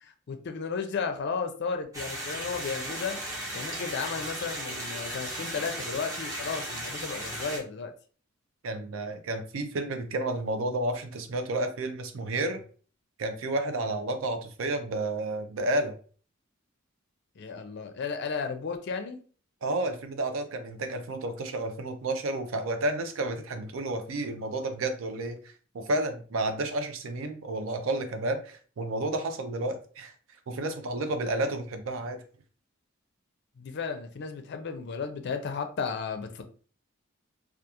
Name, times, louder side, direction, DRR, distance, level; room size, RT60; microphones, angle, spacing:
voice 1, 0.0-3.2 3.5-7.9 17.4-19.2 33.6-36.4, left 5 dB, 55° left, 7 dB, 0.4 m, -34 dB
sound 1, 1.9-7.6, right 1 dB, 15° right, 0.7 m, -36 dB
voice 2, 8.6-12.6 13.2-16.0 19.6-30.1 30.5-32.2, right 2 dB, 85° right, 7 dB, 0.5 m, -31 dB
2.4 x 2.3 x 2.8 m, 0.41 s
head